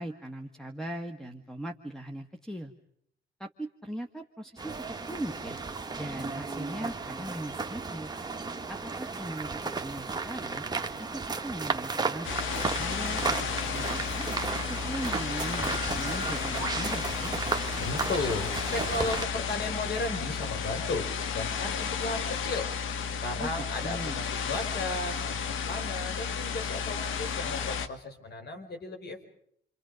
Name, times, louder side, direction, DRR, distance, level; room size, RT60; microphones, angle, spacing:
voice 1, 0.0-2.7 3.4-4.7 5.1-5.6 6.0-8.1 8.7-10.6 11.1-14.2 14.6-17.3 23.4-23.5 23.8-24.2, right 1 dB, 5° left, 1 dB, 1.7 m, -39 dB
sound 1, 4.6-19.2, right 4 dB, 20° right, 1.7 m, -34 dB
sound 2, 12.2-27.9, left 6 dB, 80° left, 1.6 m, -33 dB
voice 2, 17.8-21.0 21.3-22.7 23.2-29.2, left 2 dB, 55° left, 6 dB, 4.9 m, -35 dB
28.5 x 26.5 x 5.2 m, 0.68 s
cardioid pair, 90°, 20 cm